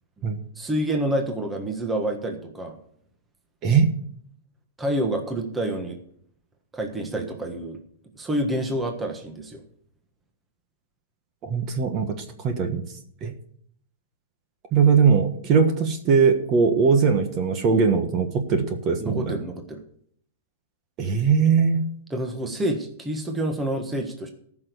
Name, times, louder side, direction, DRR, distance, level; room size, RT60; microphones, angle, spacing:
voice 1, 0.5-2.8 4.8-6.0 6.7-7.8 8.2-9.6 19.0-19.8 22.1-24.3, right 1 dB, 10° right, 3 dB, 1.4 m, -28 dB
voice 2, 3.6-3.9 11.4-12.8 13.2-13.3 14.7-19.4 21.0-21.9, right 5 dB, 30° right, 6 dB, 1.4 m, -20 dB
14.0 x 6.1 x 6.8 m, 0.63 s
hypercardioid pair, 155°, 0 cm